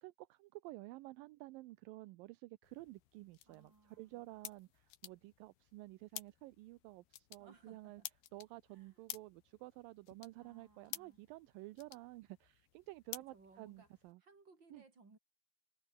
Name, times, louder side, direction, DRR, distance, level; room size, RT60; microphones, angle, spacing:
voice 1, 0.0-8.0 8.3-14.2 14.7-14.8, right 19 dB, 80° right, 2.1 m, -52 dB
sound 1, 2.6-14.1, left 14 dB, 80° left, 3.4 m, -54 dB
voice 2, 3.5-4.4 7.4-8.1 8.7-9.0 10.4-11.2 13.2-13.9 14.2-15.2, right 3 dB, 25° right, 5.4 m, -64 dB
omnidirectional pair, 4.6 m